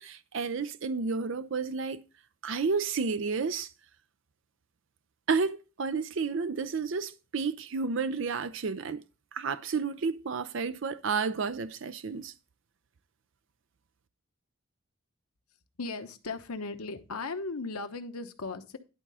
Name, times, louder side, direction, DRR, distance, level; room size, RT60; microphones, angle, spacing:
voice 1, 0.0-2.0 2.4-3.7 5.3-9.0 9.3-12.3, right 5 dB, 60° right, 0.5 m, -31 dB
voice 2, 15.8-18.8, left 3 dB, 90° left, 1.0 m, -37 dB
11.0 x 3.7 x 5.5 m
head